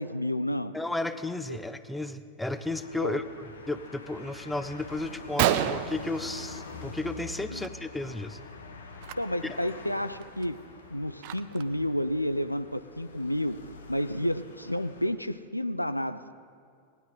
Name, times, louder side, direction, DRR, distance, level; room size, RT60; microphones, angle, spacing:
voice 1, 0.0-0.7 1.5-1.6 3.0-3.2 7.5-7.7 9.2-10.6 10.9-13.6 13.9-16.3, left 1 dB, 90° left, 12 dB, 0.4 m, -30 dB
voice 2, 0.7-8.4 9.4-9.6, left 2 dB, 5° left, 11 dB, 0.5 m, -33 dB
sound 1, 2.5-15.1, left 4 dB, 70° left, 1.2 m, -46 dB
Gunshot gunfire, 5.1-5.2 5.4-7.0 7.3-7.7 7.9-8.2 8.9-9.1 9.7-9.8 10.2-11.8, right 11 dB, 45° right, 0.5 m, -30 dB
19.0 x 10.0 x 3.9 m, 2.2 s
figure-of-eight pair, 90°, 0 cm